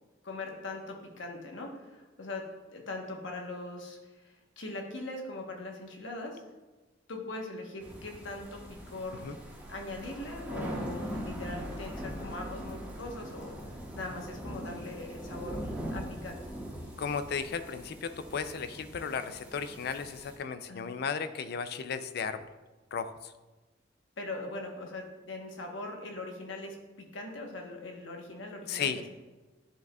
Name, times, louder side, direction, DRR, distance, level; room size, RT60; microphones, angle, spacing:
voice 1, 0.2-2.5 2.7-6.4 7.1-9.2 9.7-13.6 14.0-16.4 20.7-20.9 24.2-29.0, left 2 dB, 75° left, 2 dB, 1.1 m, -41 dB
sound 1, 7.8-20.4, equal, 5° right, 1.6 m, -41 dB
voice 2, 17.0-22.5 22.9-23.3 28.7-29.0, left 6 dB, 55° left, 11 dB, 0.4 m, -35 dB
10.5 x 4.9 x 2.3 m, 1.2 s
head